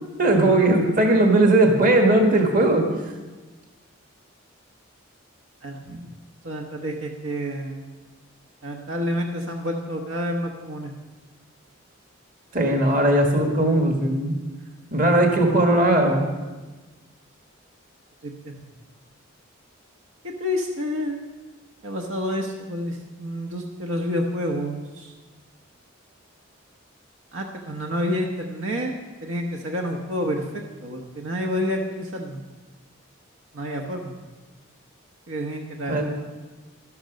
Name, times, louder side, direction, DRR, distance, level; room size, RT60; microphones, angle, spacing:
voice 1, 0.2-2.8 12.5-14.4 14.9-16.3 35.9-36.0, right 1 dB, 40° right, 3 dB, 1.6 m, -18 dB
voice 2, 5.6-6.1 6.4-7.9 8.6-10.9 18.2-18.5 20.4-21.2 21.8-25.1 27.3-28.9 29.2-32.4 33.5-34.2 35.3-36.0, equal, 75° right, 2 dB, 1.1 m, -29 dB
12.0 x 12.0 x 5.2 m, 1.2 s
head